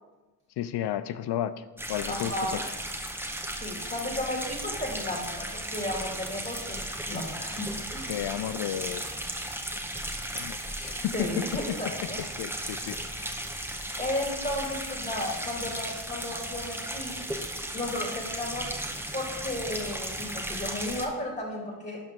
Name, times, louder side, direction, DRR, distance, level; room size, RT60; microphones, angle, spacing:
voice 1, 0.6-2.6 8.1-9.0 10.3-11.3 12.4-13.0, left 11 dB, 75° left, 13 dB, 0.5 m, -32 dB
sound 1, 1.8-21.1, right 1 dB, 5° right, 1.2 m, -35 dB
voice 2, 2.1-2.7 3.6-6.8 7.1-8.1 10.6-12.2 14.0-17.2 17.7-18.7 19.1-22.0, left 1 dB, 25° left, -2 dB, 2.4 m, -34 dB
11.5 x 5.0 x 3.7 m, 1.1 s
cardioid pair, 55°, 40 cm